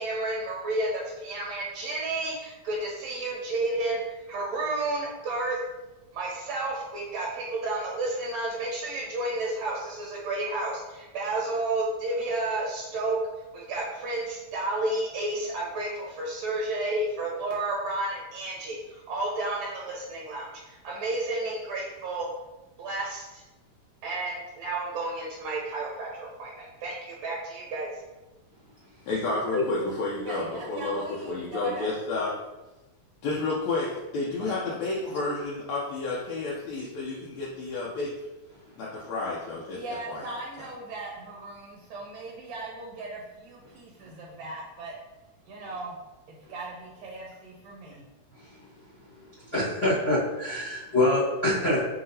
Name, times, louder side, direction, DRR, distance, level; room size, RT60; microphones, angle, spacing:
voice 1, 0.0-4.0 4.3-5.6 6.1-13.2 13.5-22.3 22.8-23.4 24.0-27.9 30.3-31.9 39.7-44.9 45.5-46.0 46.5-48.0, right 2 dB, 75° right, -3 dB, 1.8 m, -32 dB
voice 2, 29.1-32.3 33.2-38.1 38.8-40.7, left 3 dB, 75° left, -6 dB, 1.8 m, -31 dB
voice 3, 49.5-51.8, left 1 dB, 35° left, -12 dB, 1.0 m, -25 dB
5.6 x 2.7 x 2.7 m, 1.1 s
omnidirectional pair, 3.4 m